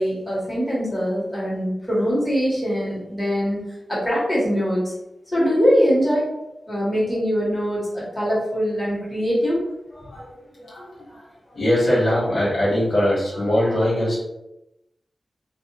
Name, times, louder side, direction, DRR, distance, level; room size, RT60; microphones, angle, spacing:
voice 1, 0.0-3.6 3.9-4.9 5.3-6.3 6.7-9.6, equal, 15° left, -7 dB, 1.5 m, -22 dB
voice 2, 9.9-14.2, left 1 dB, 70° left, -8 dB, 1.1 m, -22 dB
2.6 x 2.1 x 2.7 m, 0.91 s
cardioid pair, 45°, 0 cm